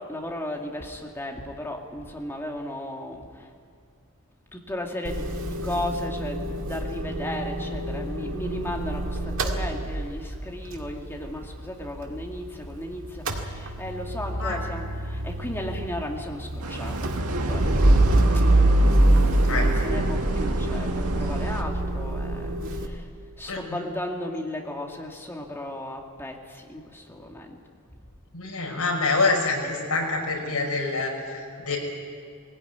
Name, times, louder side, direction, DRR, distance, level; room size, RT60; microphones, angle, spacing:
voice 1, 0.1-3.5 4.5-17.0 17.3-18.0 18.8-23.1 23.4-27.6, left 1 dB, 10° left, 1 dB, 2.3 m, -35 dB
Motor vehicle (road) / Engine starting / Idling, 5.0-12.8 13.0-22.9, right 1 dB, 65° right, 2.0 m, -25 dB
sound 1, 16.6-21.6, right 2 dB, 85° right, 1.8 m, -32 dB
voice 2, 23.5-23.8 28.3-31.8, left 3 dB, 85° left, 0 dB, 5.7 m, -26 dB
21.0 x 17.0 x 9.5 m, 2.4 s
head